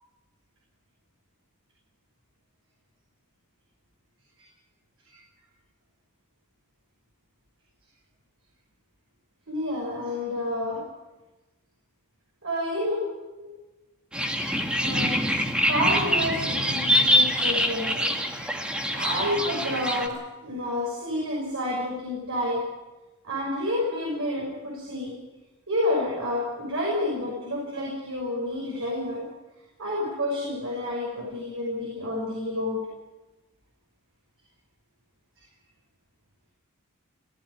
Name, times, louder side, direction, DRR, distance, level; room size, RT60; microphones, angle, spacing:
voice 1, 9.5-10.8 12.4-13.0 13.4-13.5 14.8-15.2 15.7-18.1 18.9-22.6 23.2-25.2 25.7-29.2 29.8-32.8, left 1 dB, 60° right, -3 dB, 6.4 m, -29 dB
sound 1, 14.1-20.1, equal, 5° right, 1.7 m, -24 dB
18.5 x 15.0 x 9.9 m, 1.1 s
head